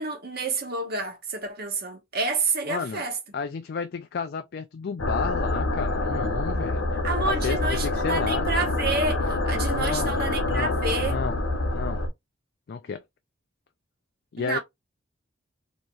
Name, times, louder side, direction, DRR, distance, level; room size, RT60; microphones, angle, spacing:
voice 1, 0.0-3.2 7.0-11.2 14.4-14.6, right 3 dB, 50° right, 1.3 m, -29 dB
voice 2, 2.7-3.1 3.3-6.9 7.2-8.5 9.7-10.2 10.4-10.8 11.0-11.4 11.7-12.0 12.7-13.0 14.3-14.6, left 5 dB, 55° left, 0.4 m, -31 dB
sound 1, 5.0-12.1, left 2 dB, 80° left, 0.9 m, -26 dB
4.6 x 2.9 x 2.4 m
head